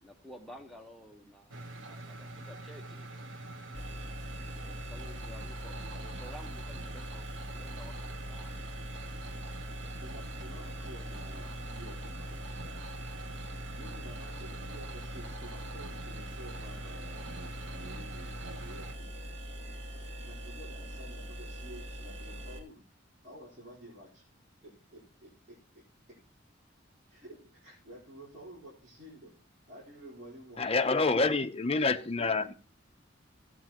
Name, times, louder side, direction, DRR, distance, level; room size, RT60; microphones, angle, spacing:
voice 1, 0.0-3.1 4.6-8.8, equal, ahead, 1 dB, 1.1 m, -52 dB
sound 1, 1.5-18.9, right 2 dB, 85° right, 1.0 m, -45 dB
sound 2, 3.7-22.6, equal, 70° right, 2.5 m, -42 dB
voice 2, 10.0-12.9 13.7-19.3 20.2-22.8 23.2-24.2 24.6-25.6 27.1-29.3 29.7-31.2 31.9-32.5, equal, 40° right, -9 dB, 4.3 m, -51 dB
voice 3, 30.6-32.5, left 3 dB, 30° left, 9 dB, 0.6 m, -27 dB
15.5 x 8.1 x 3.0 m, 0.35 s
head